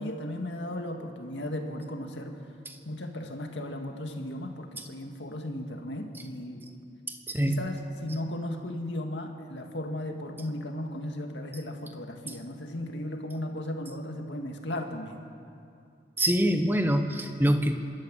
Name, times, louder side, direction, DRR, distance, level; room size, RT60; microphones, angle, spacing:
voice 1, 0.0-2.5 2.9-6.7 7.4-15.2, left 1 dB, 85° left, 3 dB, 2.1 m, -36 dB
voice 2, 7.1-7.7 16.2-17.8, equal, 10° right, 6 dB, 1.2 m, -25 dB
24.5 x 13.0 x 8.9 m, 2.4 s
head